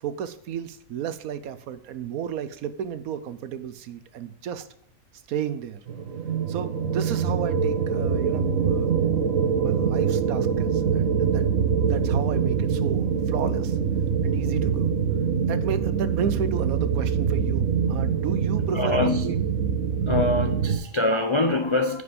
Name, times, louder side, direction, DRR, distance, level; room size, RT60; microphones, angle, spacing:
voice 1, 0.0-4.7 5.3-5.8 6.5-9.2 9.5-11.4 11.8-13.8 14.2-14.9 15.4-19.4, right 8 dB, 85° right, 1.2 m, -33 dB
sound 1, 5.9-20.8, right 6 dB, 70° right, 1.5 m, -24 dB
voice 2, 18.7-19.3 20.1-22.0, left 2 dB, 50° left, 0.3 m, -24 dB
9.7 x 5.2 x 5.1 m
omnidirectional pair, 1.5 m